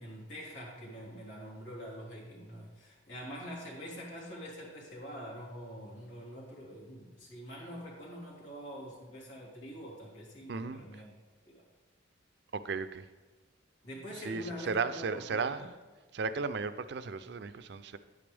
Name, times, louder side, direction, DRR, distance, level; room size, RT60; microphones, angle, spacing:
voice 1, 0.0-11.2 11.4-11.7 13.8-15.7, equal, 85° left, -5 dB, 3.3 m, -45 dB
voice 2, 10.5-10.8 12.5-13.0 14.2-15.7 16.1-18.0, right 4 dB, 60° right, 12 dB, 0.5 m, -35 dB
9.9 x 8.6 x 3.5 m, 1.3 s
head